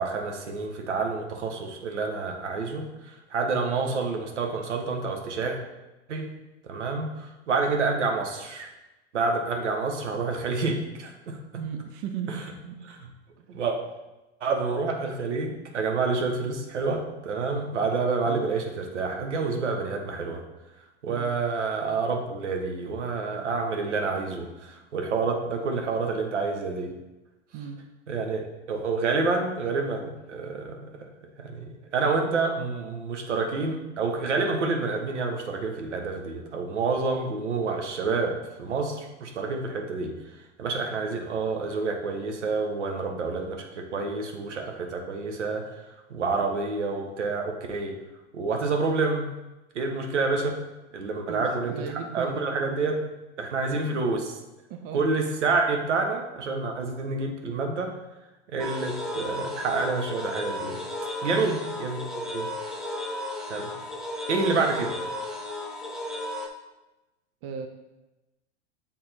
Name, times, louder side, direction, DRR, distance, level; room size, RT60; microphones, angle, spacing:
voice 1, 0.0-5.6 6.1-6.3 6.6-8.7 9.1-11.4 12.9-13.0 13.5-13.8 14.4-20.4 21.0-26.9 28.1-30.9 31.4-31.6 31.9-40.1 40.6-45.6 46.1-47.9 48.3-49.3 49.7-50.6 50.9-51.8 52.1-53.1 53.4-54.3 54.9-57.9 58.5-60.8 61.2-62.0 62.3-62.5 63.5-63.7 64.3-64.9, right 4 dB, 80° right, 3 dB, 1.1 m, -28 dB
voice 2, 11.6-12.8 13.4-13.5 18.3-18.5 21.1-21.3 27.5-27.8 51.3-52.5 53.7-54.0 54.7-55.1 61.3-61.6 67.4-67.7, right 7 dB, 45° right, 5 dB, 0.7 m, -37 dB
sound 1, 58.6-66.5, left 1 dB, ahead, 0.6 m, -34 dB
6.8 x 3.7 x 4.3 m, 1.0 s
hypercardioid pair, 105°, 35 cm